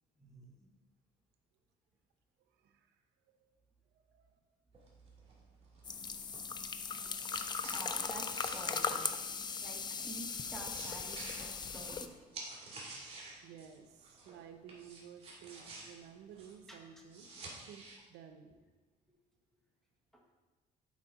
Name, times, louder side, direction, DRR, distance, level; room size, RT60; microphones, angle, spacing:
voice 1, 0.2-0.7 5.9-6.0 7.6-9.0 9.6-12.1 16.7-16.8, right 1 dB, ahead, -1 dB, 1.4 m, -49 dB
voice 2, 2.6-3.0 3.9-4.4 13.4-17.3 17.6-18.5, right 8 dB, 85° right, 6 dB, 0.7 m, -54 dB
sound 1, 4.7-14.4 14.7-18.0, right 3 dB, 35° right, 2.1 m, -51 dB
sound 2, 5.8-12.1, left 5 dB, 25° left, 0.4 m, -38 dB
8.4 x 4.9 x 4.0 m, 1.3 s
cardioid pair, 110°, 17 cm